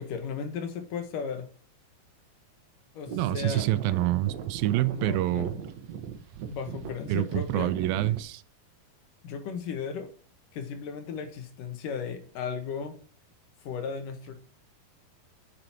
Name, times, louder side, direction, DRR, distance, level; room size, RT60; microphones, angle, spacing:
voice 1, 0.0-1.5 2.9-3.7 4.9-5.6 6.5-7.8 9.2-10.1 10.5-13.0 13.6-14.3, left 6 dB, 70° left, 2.8 m, -35 dB
sound 1, 3.0-8.2, right 8 dB, 60° right, 2.1 m, -39 dB
voice 2, 3.2-5.5 7.1-8.4, right 15 dB, 85° right, 2.4 m, -27 dB
8.8 x 7.6 x 4.5 m
omnidirectional pair, 4.1 m